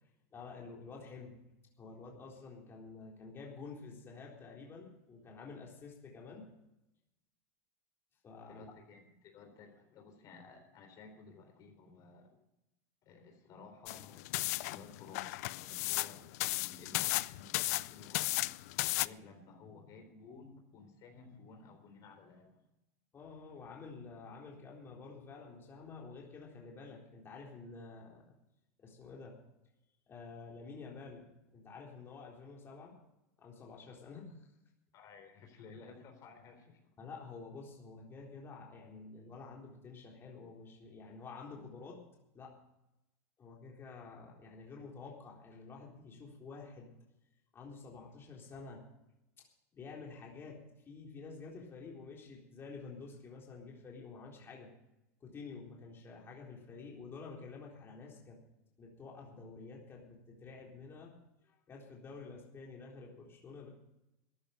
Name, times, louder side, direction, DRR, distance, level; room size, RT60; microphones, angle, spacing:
voice 1, 0.3-1.4 1.8-6.5 8.2-8.7 23.1-28.3 28.8-29.4 30.1-33.0 33.4-34.5 37.0-42.0 42.3-42.6 43.4-47.0 47.5-48.9 49.4-49.5 49.7-54.7 55.2-58.4 58.8-61.2 61.4-63.7, left 4 dB, 25° left, -2 dB, 3.8 m, -50 dB
voice 2, 8.5-12.4 13.0-14.3 14.7-18.5 19.0-22.6 34.9-36.8, left 4 dB, 45° left, 4 dB, 3.8 m, -55 dB
sound 1, 13.9-19.1, left 20 dB, 70° left, 0.5 m, -35 dB
14.0 x 10.5 x 6.6 m, 0.88 s
supercardioid pair, 125°, 9 cm